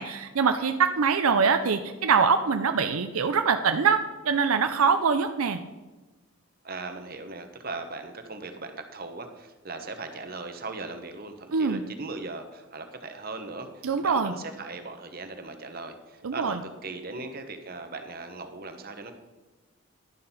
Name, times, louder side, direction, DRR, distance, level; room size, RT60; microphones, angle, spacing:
voice 1, 0.0-5.6 11.5-11.8 13.8-14.3 16.2-16.6, right 5 dB, 80° right, 7 dB, 0.6 m, -24 dB
voice 2, 6.6-19.1, right 3 dB, 45° right, 7 dB, 1.1 m, -39 dB
11.5 x 6.6 x 5.6 m, 1.2 s
head